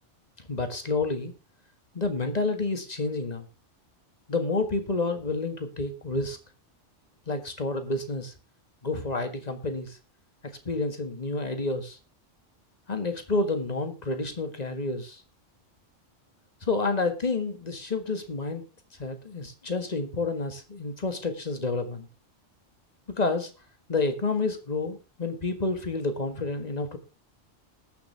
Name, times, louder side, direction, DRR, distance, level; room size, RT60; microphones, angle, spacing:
voice 1, 0.4-1.3 1.9-3.5 4.3-6.4 7.3-8.3 8.8-10.0 10.7-12.0 12.9-15.2 16.6-18.7 19.0-22.1 23.2-23.5 23.9-27.0, left 3 dB, 35° left, 8 dB, 1.8 m, -29 dB
19.5 x 7.0 x 3.3 m, 0.32 s
omnidirectional pair, 1.2 m